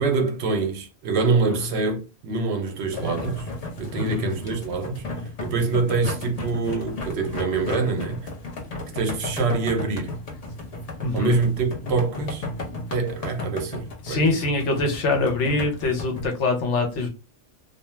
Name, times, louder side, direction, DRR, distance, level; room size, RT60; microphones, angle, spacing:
voice 1, 0.0-3.5 3.8-5.0 5.4-8.2 8.9-10.1 11.1-12.5 12.9-14.3, right 4 dB, 65° right, 0.8 m, -25 dB
sound 1, 2.9-16.2, left 2 dB, 40° left, 0.6 m, -34 dB
voice 2, 4.0-4.3 11.0-11.4 14.0-17.1, left 2 dB, 75° left, 1.0 m, -24 dB
2.3 x 2.2 x 3.0 m
omnidirectional pair, 1.2 m